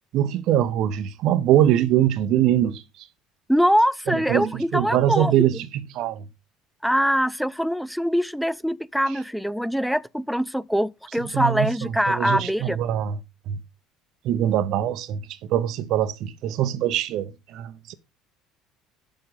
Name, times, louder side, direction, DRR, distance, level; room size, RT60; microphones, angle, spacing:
voice 1, 0.1-2.8 4.1-6.2 11.2-13.2 13.5-13.6 14.2-15.2 15.5-17.9, right 11 dB, 50° right, 0.7 m, -23 dB
voice 2, 3.5-5.3 6.8-12.8, equal, ahead, 0.3 m, -23 dB
7.0 x 5.2 x 5.4 m
figure-of-eight pair, 60°, 0 cm